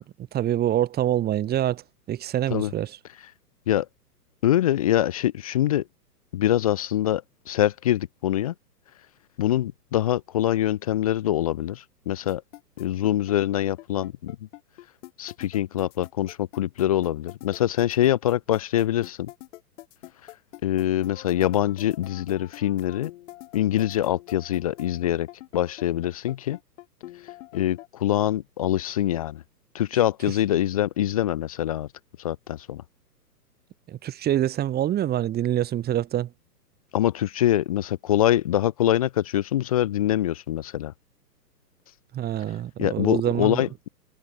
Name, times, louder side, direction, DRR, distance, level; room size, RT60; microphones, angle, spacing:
voice 1, 0.3-1.8 2.1-3.0 33.9-36.3 42.1-43.6, right 12 dB, 20° right, 2.3 m, -25 dB
voice 2, 4.4-5.8 6.3-8.5 9.4-12.4 12.8-14.4 15.2-19.3 20.6-23.1 23.5-25.3 25.5-26.6 27.5-29.4 29.7-31.9 32.2-32.8 36.9-40.9 42.8-43.9, left 12 dB, 25° left, 0.4 m, -24 dB
sound 1, 12.3-27.9, left 16 dB, 45° left, 4.3 m, -44 dB
figure-of-eight pair, 120°, 49 cm